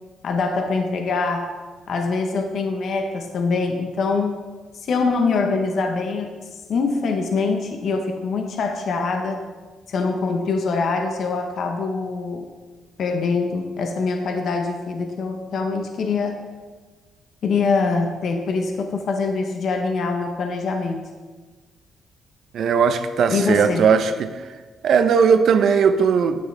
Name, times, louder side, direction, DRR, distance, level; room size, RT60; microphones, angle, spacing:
voice 1, 0.2-1.5 1.9-4.4 4.8-6.3 6.7-9.4 9.9-12.5 13.0-16.4 17.4-21.0 23.3-23.9, left 4 dB, 60° left, 4 dB, 0.9 m, -24 dB
voice 2, 22.5-24.3 24.8-26.5, right 6 dB, 65° right, 9 dB, 0.6 m, -18 dB
9.4 x 8.1 x 3.4 m, 1.4 s
cardioid pair, 90°, 0 cm